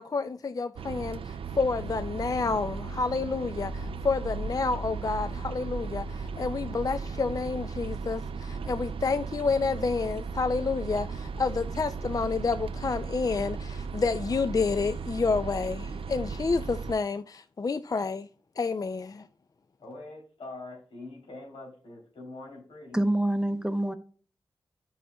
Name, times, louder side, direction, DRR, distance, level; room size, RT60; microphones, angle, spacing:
voice 1, 0.0-18.3 18.6-19.3, left 4 dB, 40° left, 0.3 m, -29 dB
sound 1, 0.8-17.0, right 4 dB, 85° right, 0.4 m, -36 dB
voice 2, 19.8-23.0, left 2 dB, 90° left, 3.2 m, -44 dB
voice 3, 22.9-24.0, right 1 dB, 10° right, 0.7 m, -26 dB
8.3 x 5.5 x 2.3 m
cardioid pair, 50°, 9 cm